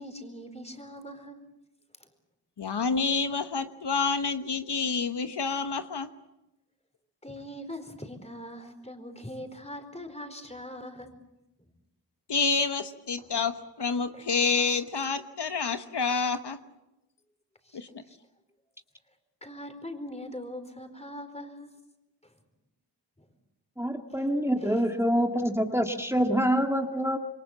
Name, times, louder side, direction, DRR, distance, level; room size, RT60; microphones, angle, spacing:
voice 1, 0.0-1.5 2.0-2.1 7.2-11.2 11.6-11.7 13.2-13.5 14.1-14.3 14.6-14.7 17.6-18.2 19.4-21.7 22.2-22.4 23.2-23.3 24.1-24.3 24.6-24.9, left 1 dB, 15° left, 7 dB, 4.5 m, -42 dB
voice 2, 2.6-6.1 12.3-16.6 17.7-18.0, left 5 dB, 75° left, 9 dB, 1.2 m, -28 dB
voice 3, 23.8-27.2, equal, 5° right, 4 dB, 2.0 m, -26 dB
27.5 x 23.0 x 7.3 m, 0.92 s
cardioid pair, 45°, 41 cm